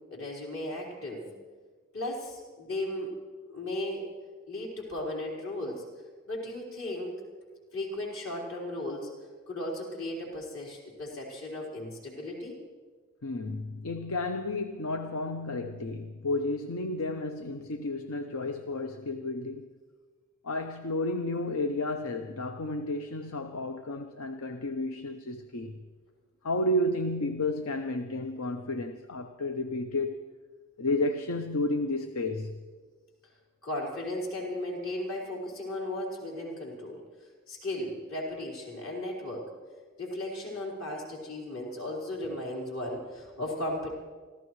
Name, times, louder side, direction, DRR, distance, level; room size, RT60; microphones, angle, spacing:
voice 1, 0.1-1.4 1.9-3.1 3.5-4.1 4.5-5.8 6.3-7.2 7.7-9.1 9.5-12.6 33.6-37.0 37.5-39.5 40.0-43.9, left 1 dB, 70° left, 4.4 m, -36 dB
voice 2, 13.2-19.7 20.4-25.7 26.4-30.2 30.8-32.6, left 2 dB, 85° left, 0.7 m, -32 dB
26.5 x 15.0 x 3.2 m
head